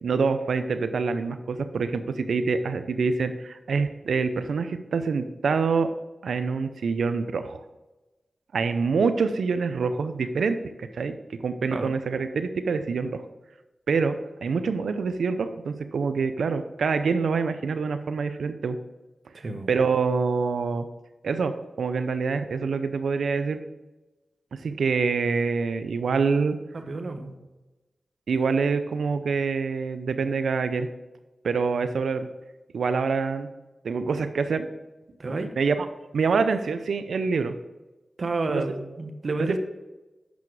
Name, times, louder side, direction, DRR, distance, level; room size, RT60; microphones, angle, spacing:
voice 1, 0.0-5.9 6.2-7.6 8.5-13.2 13.9-18.8 19.7-20.9 21.2-23.6 24.5-26.6 28.3-30.9 31.4-32.3 32.7-33.5 33.8-34.7 35.6-35.9 36.1-37.5 38.5-38.6 39.4-39.6, right 5 dB, 85° right, 10 dB, 0.5 m, -26 dB
voice 2, 19.3-19.7 26.7-27.4 35.2-35.5 38.2-39.6, right 3 dB, 65° right, 7 dB, 1.0 m, -30 dB
8.3 x 5.9 x 4.7 m, 1.1 s
cardioid pair, 40°, 0 cm